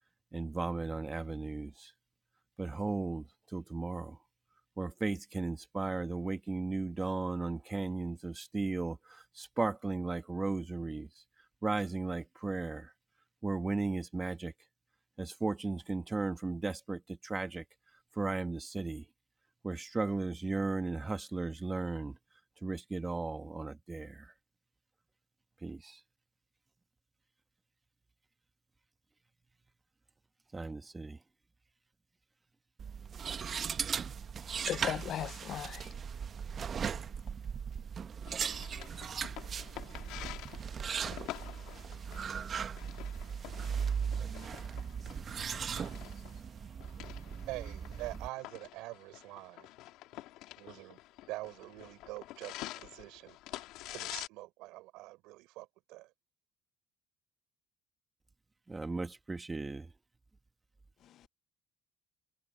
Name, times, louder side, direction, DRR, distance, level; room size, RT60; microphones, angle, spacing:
voice 1, 0.3-1.9 2.6-4.2 4.8-11.2 11.6-12.9 13.4-14.5 15.2-17.6 18.1-19.1 19.6-22.2 22.6-24.3 25.6-26.0 30.5-31.2 58.7-59.9, right 3 dB, 20° right, 1.2 m, -36 dB
sound 1, 32.8-48.3, right 7 dB, 45° right, 0.9 m, -38 dB
voice 2, 34.5-35.9 61.0-61.3, left 11 dB, 60° left, 0.4 m, -38 dB
sound 2, 38.3-54.3, left 16 dB, 85° left, 2.5 m, -48 dB
voice 3, 47.5-49.7 50.6-51.0 51.3-56.1, right 20 dB, 90° right, 4.1 m, -45 dB
cardioid pair, 100°, 0 cm